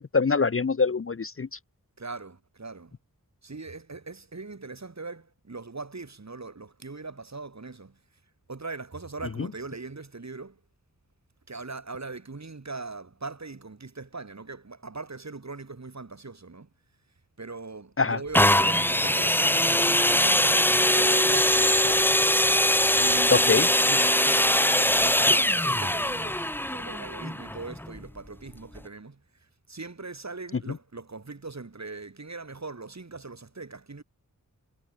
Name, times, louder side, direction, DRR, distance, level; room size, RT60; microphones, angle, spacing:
voice 1, 0.0-1.5 18.0-18.2 23.3-23.7, left 4 dB, 40° left, 0.6 m, -24 dB
voice 2, 2.0-2.9 3.4-8.0 8.5-10.6 11.5-16.7 17.4-22.1 23.0-23.6 23.9-29.2 29.7-34.0, right 3 dB, 50° right, 3.1 m, -40 dB
sound 1, 18.3-28.0 28.8-28.9, left 1 dB, 5° left, 0.9 m, -22 dB
wide cardioid pair, 65°, 35 cm